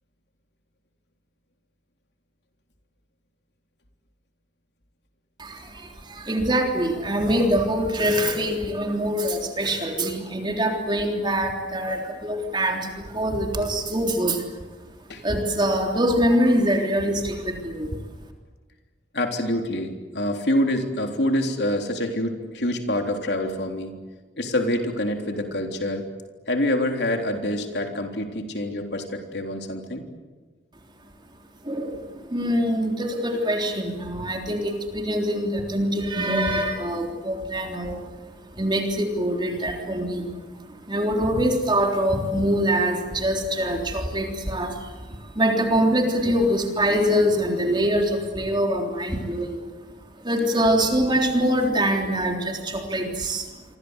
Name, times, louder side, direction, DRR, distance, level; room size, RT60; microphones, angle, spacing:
voice 1, 5.4-14.5 15.2-18.0 31.6-49.6 50.1-53.5, equal, 25° right, 2 dB, 3.5 m, -24 dB
voice 2, 19.1-24.0 24.4-26.1 26.5-30.1, left 1 dB, 70° left, 4 dB, 3.6 m, -26 dB
28.5 x 24.0 x 8.2 m, 1.3 s
head